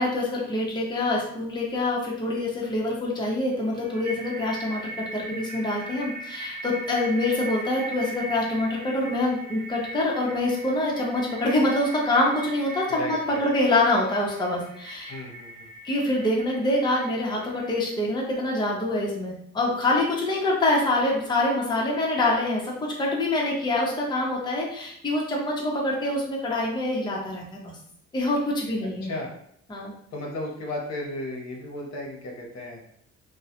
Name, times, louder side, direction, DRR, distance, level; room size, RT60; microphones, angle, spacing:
voice 1, 0.0-15.1 15.8-27.7 28.1-29.1 29.7-29.9, left 2 dB, 15° left, -3 dB, 0.6 m, -25 dB
sound 1, 3.5-17.8, right 2 dB, 75° right, 0.6 m, -40 dB
voice 2, 12.9-13.5 15.1-15.7 29.0-29.3 30.1-32.8, left 1 dB, 60° left, -1 dB, 0.7 m, -34 dB
2.3 x 2.0 x 2.8 m, 0.69 s
cardioid pair, 90°, 30 cm